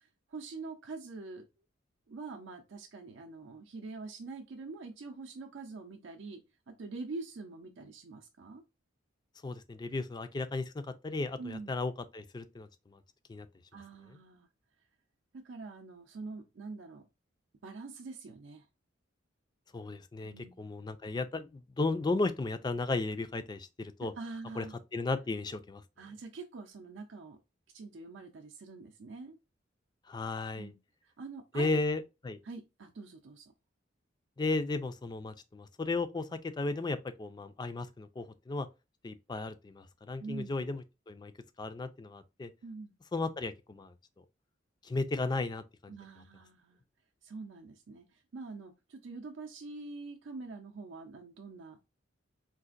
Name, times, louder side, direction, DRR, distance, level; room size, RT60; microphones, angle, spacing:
voice 1, 0.0-1.4 2.1-6.4 6.7-8.6 11.4-11.7 13.7-14.5 15.4-17.0 17.6-18.7 20.2-20.7 24.1-24.8 26.0-27.4 27.7-29.4 30.6-31.8 32.4-33.5 40.2-40.6 42.6-42.9 45.9-46.8 47.2-51.8, right 3 dB, 70° right, 0.5 m, -45 dB
voice 2, 9.4-13.0 13.3-13.5 19.7-24.1 24.6-24.7 24.9-25.8 30.1-30.7 31.5-32.4 34.4-38.7 39.0-41.3 41.6-42.5 43.1-43.9 44.8-45.9, left 3 dB, 20° left, 0.3 m, -35 dB
3.8 x 2.4 x 2.4 m
head